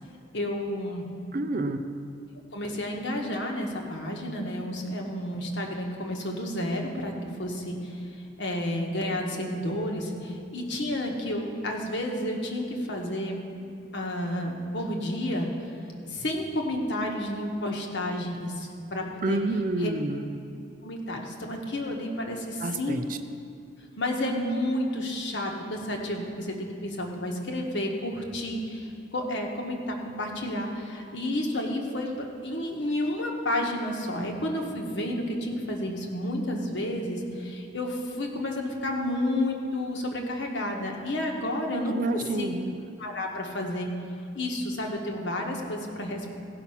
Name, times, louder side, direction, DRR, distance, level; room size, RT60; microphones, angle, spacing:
voice 1, 0.3-1.1 2.5-8.0 8.4-13.4 13.9-15.5 16.1-19.4 19.8-19.9 20.8-23.0 24.0-42.0 42.4-42.5 43.0-43.9 44.3-46.3, left 1 dB, 60° left, 1 dB, 1.3 m, -31 dB
voice 2, 1.3-1.8 19.2-20.3 22.6-23.2 41.9-42.8, right 2 dB, 40° right, 9 dB, 0.4 m, -29 dB
16.0 x 5.8 x 5.7 m, 2.5 s
head